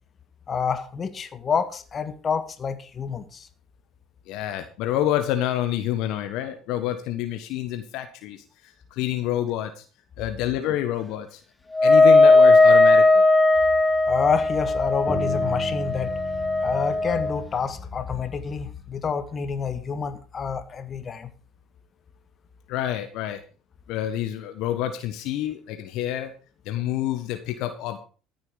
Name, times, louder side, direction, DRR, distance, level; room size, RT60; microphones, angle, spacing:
voice 1, 0.5-3.5 14.1-16.2 16.6-21.3, left 6 dB, 35° left, 1.7 m, -28 dB
voice 2, 4.3-8.4 8.9-9.8 10.2-11.4 11.8-13.2 22.7-23.4 23.9-26.3 26.6-28.0, left 12 dB, 65° left, 1.3 m, -28 dB
Wind instrument woodwind instrument, 11.7-17.4, left 2 dB, 10° left, 1.9 m, -17 dB
Bass guitar, 15.1-19.0, left 1 dB, 5° right, 4.0 m, -37 dB
14.0 x 7.7 x 5.2 m
hypercardioid pair, 60°, 0 cm